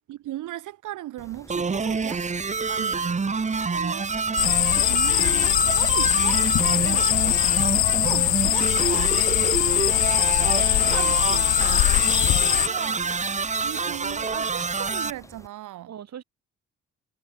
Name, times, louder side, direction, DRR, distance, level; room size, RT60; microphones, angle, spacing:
voice 1, 0.1-2.2 3.7-4.1 4.7-6.4 8.0-8.8 10.0-10.1 10.4-15.9, right 14 dB, 85° right, 3.4 m, -37 dB
Mechanisms, 1.2-15.5, left 1 dB, 10° left, 3.1 m, -49 dB
sound 1, 1.5-15.1, right 4 dB, 25° right, 1.2 m, -27 dB
voice 2, 2.7-3.1 6.8-7.3 8.8-9.2 15.9-16.2, right 9 dB, 60° right, 4.2 m, -38 dB
sound 2, 4.4-12.7, left 15 dB, 70° left, 0.7 m, -21 dB
cardioid pair, 90°, 30 cm